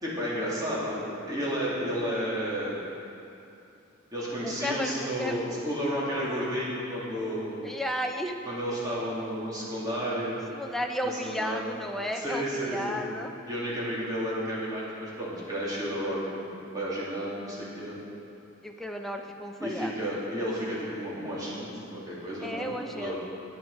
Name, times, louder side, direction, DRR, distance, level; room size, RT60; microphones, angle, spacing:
voice 1, 0.0-2.8 4.1-7.6 8.4-10.4 11.0-11.7 12.1-13.0 13.5-18.0 19.6-23.1, equal, 20° right, -8 dB, 2.7 m, -32 dB
voice 2, 4.4-5.6 7.6-8.4 10.5-13.4 18.6-19.9 22.4-23.1, equal, ahead, 2 dB, 0.6 m, -33 dB
10.5 x 9.0 x 5.6 m, 2.8 s
head